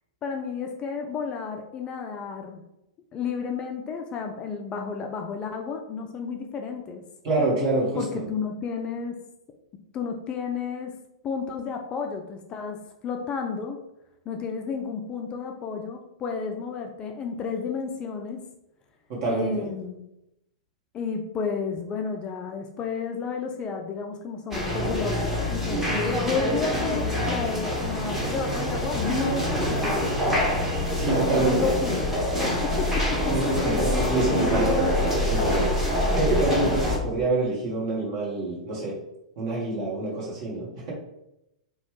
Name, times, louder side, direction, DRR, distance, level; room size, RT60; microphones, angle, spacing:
voice 1, 0.2-2.6 3.1-7.0 8.0-9.2 9.9-10.9 11.2-12.8 13.0-13.8 14.3-18.4 19.3-20.0 20.9-30.1 31.3-32.1 32.3-33.2, left 5 dB, 25° left, 3 dB, 0.3 m, -31 dB
voice 2, 7.2-8.2 19.1-19.7 30.9-31.7 33.3-34.7 35.3-35.9 36.1-39.0 39.4-40.9, right 2 dB, 50° right, -4 dB, 1.3 m, -26 dB
sound 1, 24.5-37.0, left 1 dB, 10° right, 0.8 m, -25 dB
3.0 x 2.3 x 3.1 m, 0.85 s
figure-of-eight pair, 100°, 4 cm